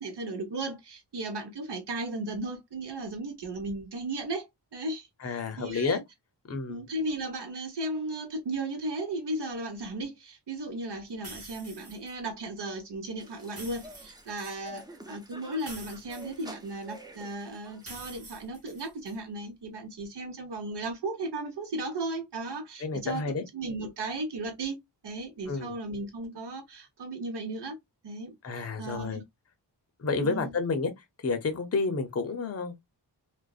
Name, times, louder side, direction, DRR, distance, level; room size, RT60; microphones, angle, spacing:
voice 1, 0.0-6.0 6.7-23.2 23.5-24.8 25.0-27.8 28.0-29.2 30.2-30.5, right 2 dB, 70° right, 0.9 m, -36 dB
voice 2, 5.2-6.0 6.5-6.9 22.8-23.4 25.5-25.7 28.4-29.2 30.0-30.9 31.2-32.8, left 4 dB, 35° left, 0.6 m, -30 dB
sound 1, 11.2-12.1 13.4-14.6 15.6-17.0 17.8-19.2, right 2 dB, 35° right, 1.1 m, -47 dB
sound 2, 13.2-18.4, right 1 dB, 10° right, 0.4 m, -49 dB
2.5 x 2.1 x 2.3 m
wide cardioid pair, 90°, 43 cm